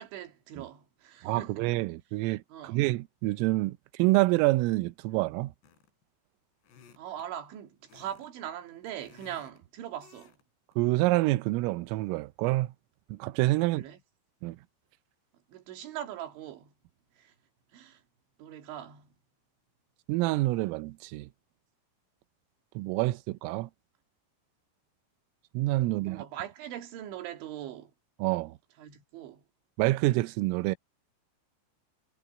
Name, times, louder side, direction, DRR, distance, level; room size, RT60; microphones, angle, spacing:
voice 1, 0.0-1.7 2.5-2.8 7.0-10.3 13.6-14.0 15.5-16.7 17.2-17.3 17.7-18.0 18.4-19.1 25.8-27.9 28.8-29.4, right 11 dB, 70° right, 4.3 m, -41 dB
voice 2, 1.2-5.5 10.8-12.7 13.1-13.8 14.4-14.6 20.1-21.3 22.8-23.7 25.6-26.2 28.2-28.6 29.8-30.8, right 20 dB, 90° right, 3.4 m, -27 dB
sound 1, 5.6-6.0 6.6-7.3 7.9-8.3 8.6-9.6 10.0-10.4 10.7-10.9, left 7 dB, 60° left, 5.4 m, -57 dB
omnidirectional pair, 5.8 m